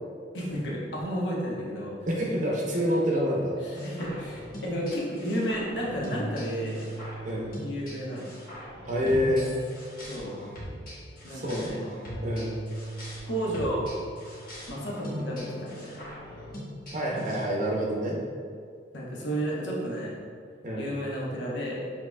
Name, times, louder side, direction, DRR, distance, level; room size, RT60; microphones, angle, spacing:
voice 1, 0.3-1.9 3.6-6.9 7.6-8.2 10.1-10.3 11.2-11.8 13.3-13.9 14.7-16.0 18.9-20.2 20.8-21.9, equal, 80° left, -4 dB, 1.0 m, -32 dB
voice 2, 2.1-3.6 7.2-7.5 8.9-9.5 11.3-11.7 12.2-12.6 16.9-18.2 20.6-20.9, equal, 40° right, -3 dB, 0.6 m, -27 dB
sound 1, 3.7-17.4, equal, 50° left, 1.3 m, -39 dB
6.5 x 2.9 x 2.2 m, 2.2 s
head